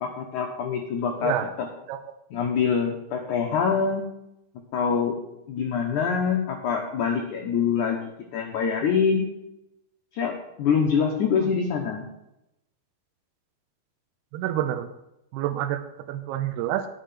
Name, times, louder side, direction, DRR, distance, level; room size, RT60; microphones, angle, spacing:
voice 1, 0.0-1.7 2.3-4.1 4.7-5.2 5.5-9.3 10.1-12.0, left 6 dB, 65° left, 2 dB, 2.3 m, -25 dB
voice 2, 14.3-14.9 15.3-15.8 16.1-16.9, right 12 dB, 85° right, 8 dB, 2.6 m, -27 dB
11.0 x 6.7 x 7.6 m, 0.87 s
omnidirectional pair, 4.5 m